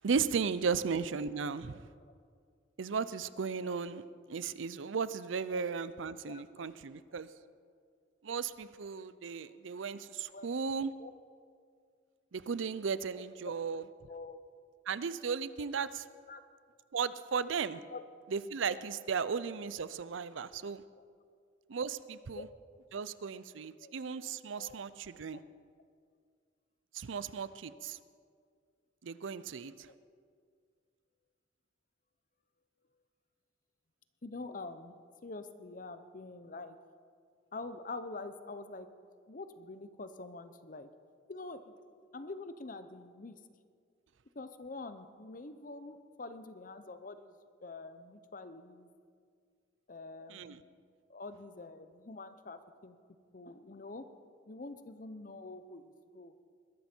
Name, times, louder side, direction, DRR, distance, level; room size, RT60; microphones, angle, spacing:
voice 1, 0.0-1.9 2.8-4.0 4.3-7.3 8.2-10.9 12.3-13.8 14.9-16.0 16.9-17.8 18.3-20.8 21.7-22.5 22.9-25.4 26.9-28.0 29.0-29.9 50.3-50.6, right 5 dB, 75° right, 16 dB, 0.5 m, -35 dB
voice 2, 6.2-6.7 9.4-9.5 10.3-10.5 11.0-11.1 14.1-14.4 16.3-16.4 17.9-18.0 21.0-21.1 22.3-22.5 23.8-23.9 24.6-24.8 25.3-25.4 29.9-30.0 34.2-34.9 35.2-36.8 37.5-38.9 39.3-40.9 41.3-41.7 42.1-43.4 44.3-47.3 47.6-48.9 49.9-50.6 51.1-53.0 53.3-54.1 54.5-56.3, left 3 dB, 45° left, 11 dB, 0.8 m, -46 dB
21.5 x 12.5 x 4.5 m, 2.1 s
head